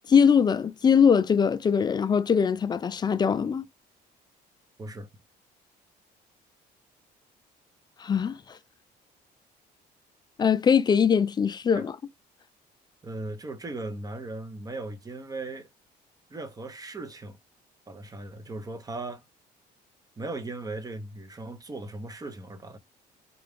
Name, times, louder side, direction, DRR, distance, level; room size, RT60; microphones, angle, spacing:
voice 1, 0.1-3.6 8.0-8.4 10.4-11.9, left 7 dB, 25° left, 0.4 m, -22 dB
voice 2, 13.0-15.7 16.3-17.4 17.9-19.2 20.2-22.8, right 2 dB, 20° right, 0.8 m, -37 dB
3.8 x 2.3 x 3.4 m
cardioid pair, 110°, 17 cm